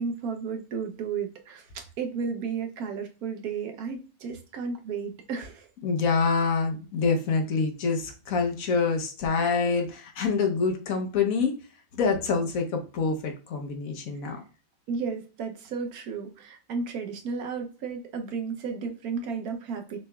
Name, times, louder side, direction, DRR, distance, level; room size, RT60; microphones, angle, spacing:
voice 1, 0.0-5.7 14.9-20.0, right 5 dB, 75° right, 5 dB, 1.2 m, -33 dB
voice 2, 5.8-11.6 11.9-14.4, left 4 dB, 65° left, 4 dB, 1.2 m, -26 dB
6.3 x 3.3 x 2.3 m, 0.34 s
omnidirectional pair, 1.6 m